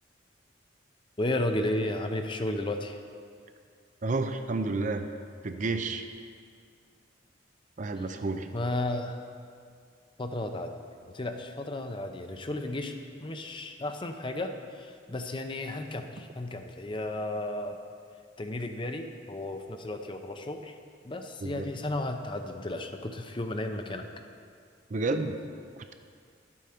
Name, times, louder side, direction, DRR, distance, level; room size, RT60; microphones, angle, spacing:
voice 1, 1.2-3.0 8.0-8.1 8.5-9.2 10.2-10.8 11.1-17.8 18.4-20.8 21.0-24.1, left 1 dB, 25° left, 6 dB, 0.6 m, -33 dB
voice 2, 4.0-5.1 5.4-6.0 7.8-8.5 21.4-21.7 24.9-25.4 25.8-25.9, right 3 dB, 40° right, 7 dB, 0.5 m, -30 dB
11.5 x 8.5 x 4.4 m, 2.2 s
head